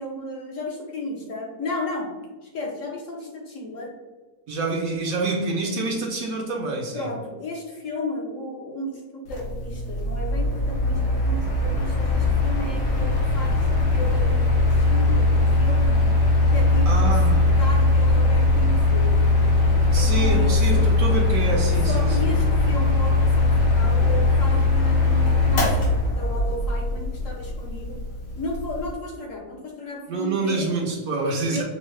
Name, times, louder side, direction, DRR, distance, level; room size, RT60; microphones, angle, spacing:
voice 1, 0.0-2.2 2.4-4.0 6.9-16.1 16.5-19.2 19.9-20.9 21.9-28.0 28.4-30.7 31.4-31.6, left 1 dB, 60° left, 0 dB, 0.9 m, -34 dB
voice 2, 4.5-7.1 16.9-17.5 19.9-22.3 30.1-31.6, right 3 dB, 70° right, 0 dB, 0.9 m, -27 dB
Mechanical fan, 9.3-28.9, left 2 dB, 90° left, 1.6 m, -20 dB
5.3 x 2.1 x 3.1 m, 1.3 s
omnidirectional pair, 1.8 m